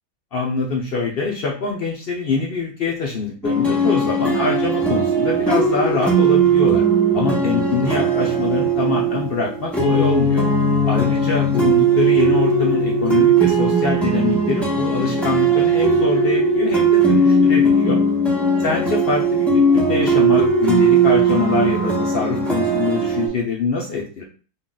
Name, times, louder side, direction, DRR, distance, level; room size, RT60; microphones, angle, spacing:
voice 1, 0.3-6.8 7.1-10.4 10.8-18.0 18.6-24.2, left 4 dB, 70° left, -1 dB, 0.5 m, -24 dB
sound 1, 3.4-23.3, right 3 dB, ahead, 0.6 m, -18 dB
3.8 x 2.4 x 3.8 m, 0.38 s
omnidirectional pair, 1.7 m